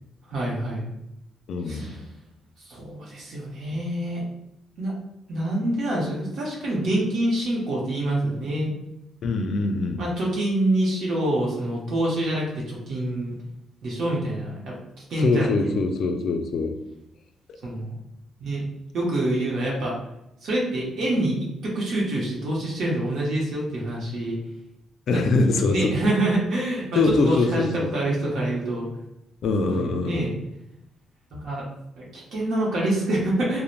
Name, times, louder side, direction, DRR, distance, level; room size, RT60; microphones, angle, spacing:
voice 1, 0.3-0.9 1.6-2.0 2.6-4.2 4.8-4.9 5.3-8.7 10.0-13.3 13.8-14.7 15.1-15.8 17.6-17.9 18.4-18.6 18.9-20.0 20.4-21.4 21.6-24.4 25.1-25.2 25.7-28.9 29.7-30.3 31.3-31.6 32.0-33.6, right 1 dB, 65° right, -4 dB, 0.7 m, -26 dB
voice 2, 1.5-2.0 9.2-10.0 15.2-16.8 25.1-26.0 26.9-27.9 29.4-30.2, left 3 dB, 65° left, 6 dB, 0.3 m, -23 dB
3.0 x 2.0 x 2.4 m, 0.83 s
cardioid pair, 90°, 0 cm